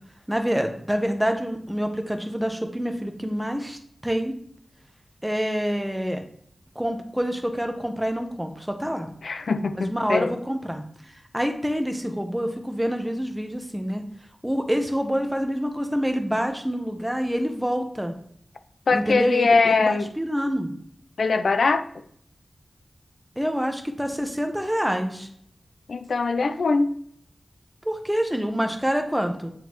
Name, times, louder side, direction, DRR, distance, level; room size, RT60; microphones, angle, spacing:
voice 1, 0.3-3.8 4.0-4.4 5.2-6.2 6.8-9.1 9.7-10.8 11.3-14.0 14.4-18.1 18.9-20.7 23.4-25.3 27.8-29.5, equal, 5° right, 5 dB, 0.9 m, -26 dB
voice 2, 9.2-10.3 18.9-20.1 21.2-21.9 25.9-26.9, left 4 dB, 80° left, 10 dB, 0.4 m, -22 dB
9.3 x 3.9 x 3.1 m, 0.65 s
wide cardioid pair, 110°, 0 cm